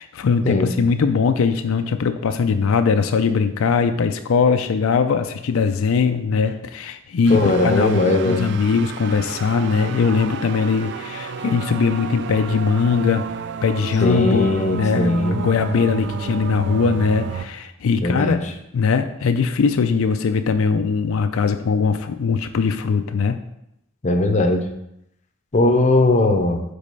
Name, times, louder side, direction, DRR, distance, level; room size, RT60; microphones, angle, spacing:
voice 1, 0.0-13.2 13.6-18.5 18.7-23.4, left 5 dB, 80° left, 8 dB, 0.4 m, -20 dB
voice 2, 7.3-8.5 14.0-15.4 18.0-18.4 24.0-24.7 25.5-26.6, left 2 dB, 35° left, 5 dB, 0.6 m, -19 dB
sound 1, 7.3-17.5, right 6 dB, 55° right, 0.4 m, -31 dB
5.1 x 4.1 x 5.5 m, 0.82 s
head